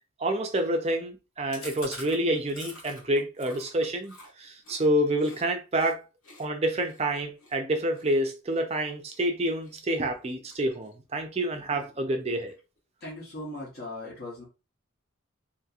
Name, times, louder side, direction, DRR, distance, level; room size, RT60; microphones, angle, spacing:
voice 1, 0.2-6.0 6.4-12.5, right 1 dB, 30° right, 0.5 m, -28 dB
Chewing mastication, 1.5-5.4 5.7-5.9 6.2-9.2 9.6-10.0 10.2-11.1 11.4-11.5 11.8-11.9 12.2-12.8, left 2 dB, 80° left, 1.4 m, -47 dB
voice 2, 13.0-14.4, left 1 dB, 45° left, 1.0 m, -38 dB
2.8 x 2.7 x 2.4 m
head